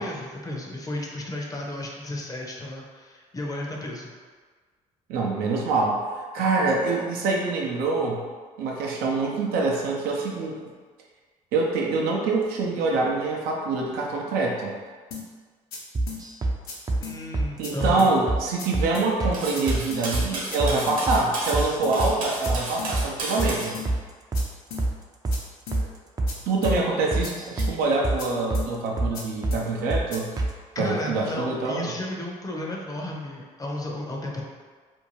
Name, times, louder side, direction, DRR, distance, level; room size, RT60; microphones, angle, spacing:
voice 1, 0.0-4.1 17.0-18.0 30.7-34.4, left 1 dB, 20° left, -1 dB, 0.6 m, -33 dB
voice 2, 5.1-6.0 6.3-8.3 8.6-10.6 11.5-14.7 17.6-23.8 26.5-30.3 30.8-31.9, right 3 dB, 75° right, -1 dB, 0.5 m, -25 dB
sound 1, 15.1-15.2 15.7-15.8 16.1-16.2 16.7-16.8 17.0-17.2 17.6-17.7 18.0-18.1 18.6-18.7 18.9-19.1 19.5-19.6 19.9-20.0 20.5-20.6 20.9-21.0 21.5-21.6 21.8-22.0 22.4-22.5 22.8-22.9 23.4-23.5 23.7-23.9 24.3-24.4 24.7-24.8 25.3-25.4 25.7-25.8 26.3-26.4 26.6-26.8 27.2-27.3 27.6-27.7 28.2-28.3 28.5-28.7 29.1-29.2 29.5-29.6 30.1-30.2, left 5 dB, 70° left, 0.7 m, -36 dB
sound 2, 15.9-16.6 16.9-17.0 17.3-17.5 17.8-18.0 18.3-18.4 18.7-18.9 19.2-19.4 19.7-20.3 20.6-20.8 21.1-21.2 21.5-21.7 22.0-22.2 22.5-22.6 22.9-23.1 23.4-24.0 24.3-24.5 24.8-24.9 25.2-25.4 25.7-25.9 26.2-26.3 26.6-26.8 27.1-27.7 28.0-28.2 28.5-28.7 29.0-29.1 29.4-29.6 29.9-30.1 30.4-30.5, right 2 dB, 25° right, 0.4 m, -25 dB
Cutlery silverware, 19.3-23.7, right 2 dB, 60° right, 1.0 m, -33 dB
2.6 x 2.2 x 3.1 m, 1.5 s
supercardioid pair, 70°, 16 cm